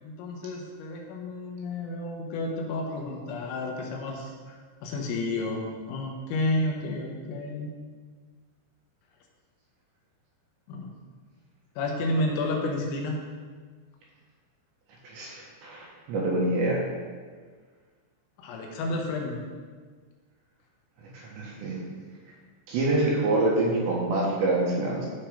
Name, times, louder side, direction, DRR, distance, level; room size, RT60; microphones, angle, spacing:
voice 1, 0.0-7.7 10.7-10.9 11.8-13.2 18.4-19.4, left 2 dB, 80° left, 0 dB, 3.8 m, -31 dB
voice 2, 15.0-16.8 21.1-21.8 22.7-25.1, right 2 dB, 65° right, -4 dB, 3.3 m, -26 dB
13.0 x 4.5 x 5.2 m, 1.5 s
omnidirectional pair, 6.0 m